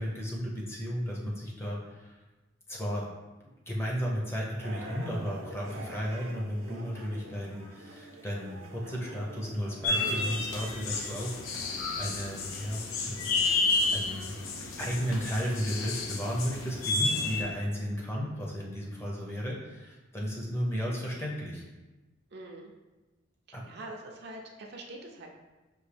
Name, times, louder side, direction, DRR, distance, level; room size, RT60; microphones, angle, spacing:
voice 1, 0.0-2.2 2.7-3.1 3.4-13.3 13.7-14.4 14.8-21.6 23.5-23.6, equal, 10° left, -3 dB, 0.6 m, -34 dB
sound 1, 4.6-10.4, right 1 dB, 85° right, 0.7 m, -45 dB
sound 2, 9.8-17.4, left 3 dB, 85° left, 0.5 m, -31 dB
voice 2, 22.3-22.7 23.7-25.3, right 1 dB, 55° right, 1 dB, 0.5 m, -44 dB
5.1 x 2.7 x 3.3 m, 1.1 s
head